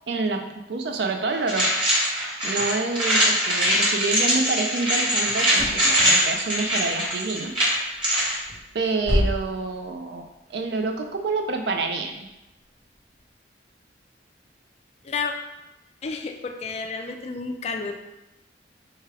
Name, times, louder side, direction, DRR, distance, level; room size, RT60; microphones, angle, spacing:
voice 1, 0.1-1.7 2.4-7.5 8.7-10.2 10.5-12.3, right 3 dB, 65° right, 4 dB, 0.4 m, -27 dB
sound 1, 1.5-8.4, equal, 25° right, 1.0 m, -22 dB
sound 2, 5.5-13.3, left 1 dB, 45° right, 1.2 m, -32 dB
voice 2, 16.0-18.0, left 4 dB, 35° left, 4 dB, 0.3 m, -31 dB
4.7 x 2.3 x 3.3 m, 0.98 s
head